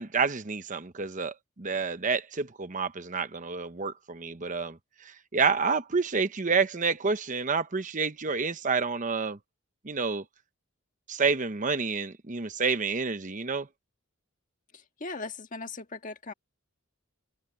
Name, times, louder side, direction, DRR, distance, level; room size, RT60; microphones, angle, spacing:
voice 1, 0.0-4.8 5.0-9.4 9.8-10.2 11.1-13.7, right 5 dB, 35° right, 0.9 m, -29 dB
voice 2, 14.7-16.3, left 3 dB, 40° left, 1.7 m, -39 dB
head